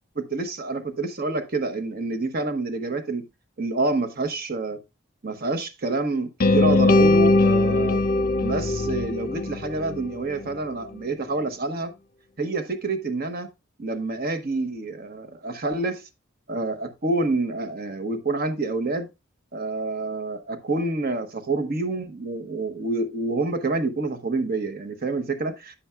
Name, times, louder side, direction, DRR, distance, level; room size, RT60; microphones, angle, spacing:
voice 1, 0.2-3.2 3.6-4.8 5.2-8.0 8.4-11.9 12.4-13.5 13.8-16.0 16.5-19.1 19.5-25.8, right 2 dB, 50° right, 1.0 m, -27 dB
sound 1, 6.4-10.5, left 2 dB, 45° left, 0.5 m, -20 dB
9.9 x 7.0 x 2.2 m
head